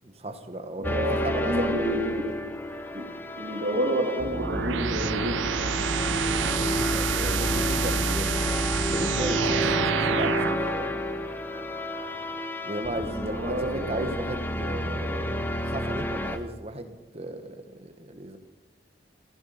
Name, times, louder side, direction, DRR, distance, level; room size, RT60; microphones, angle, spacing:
voice 1, 0.0-1.7 2.2-2.3 6.5-11.0 12.6-18.4, right 1 dB, 35° right, 7 dB, 1.3 m, -36 dB
sound 1, 0.8-16.4, left 1 dB, 10° left, 0.7 m, -30 dB
voice 2, 0.8-2.2 2.9-3.0 3.3-5.4 13.2-14.1, right 1 dB, 55° right, -5 dB, 2.7 m, -29 dB
sound 2, 4.3-10.7, right 9 dB, 90° right, 0.4 m, -29 dB
15.0 x 14.0 x 5.7 m, 1.2 s
head